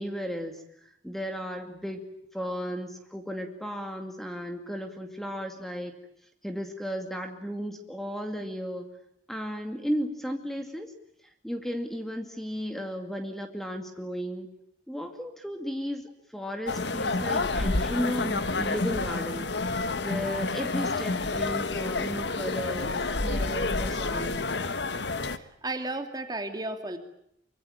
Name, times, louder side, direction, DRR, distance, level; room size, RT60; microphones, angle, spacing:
voice 1, 0.0-2.0 2.3-5.9 6.4-8.9 9.3-10.9 11.2-14.5 14.9-19.5 20.0-24.5, equal, ahead, 5 dB, 2.4 m, -34 dB
sound 1, 16.7-25.4, left 3 dB, 70° left, 1.4 m, -29 dB
voice 2, 25.3-27.0, right 2 dB, 20° right, 6 dB, 2.6 m, -34 dB
25.0 x 25.0 x 9.1 m, 0.73 s
head